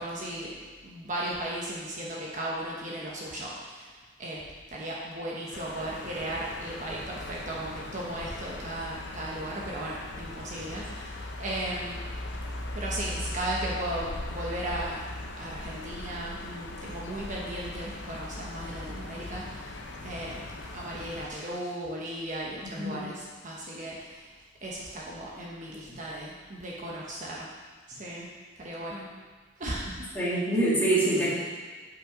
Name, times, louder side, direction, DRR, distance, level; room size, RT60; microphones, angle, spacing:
voice 1, 0.0-3.9 4.2-4.4 4.7-12.0 12.7-15.0 15.4-19.8 20.0-24.3 24.6-27.5 27.9-28.3 28.6-29.1 29.6-30.3, right 1 dB, 40° right, -4 dB, 1.2 m, -36 dB
sound 1, 5.5-21.3, left 1 dB, 60° left, 0.8 m, -39 dB
voice 2, 30.1-31.3, right 1 dB, 10° left, -8 dB, 2.0 m, -25 dB
8.3 x 5.5 x 5.1 m, 1.4 s
head